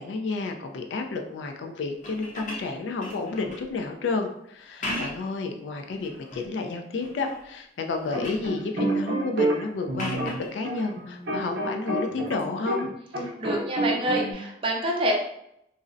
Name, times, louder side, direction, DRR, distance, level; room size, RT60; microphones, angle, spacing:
voice 1, 0.0-12.9, left 3 dB, 90° left, 4 dB, 0.3 m, -31 dB
sound 1, 1.9-3.7 4.6-5.4 5.9-6.5 7.0-7.5 7.8-8.5 10.0-10.5 12.3-12.4, left 1 dB, 45° left, 0.6 m, -37 dB
sound 2, 8.1-12.9 13.1-14.3, right 2 dB, 80° right, 0.6 m, -28 dB
voice 2, 13.4-15.1, equal, 30° right, 0 dB, 0.4 m, -27 dB
2.5 x 2.0 x 2.4 m, 0.77 s
head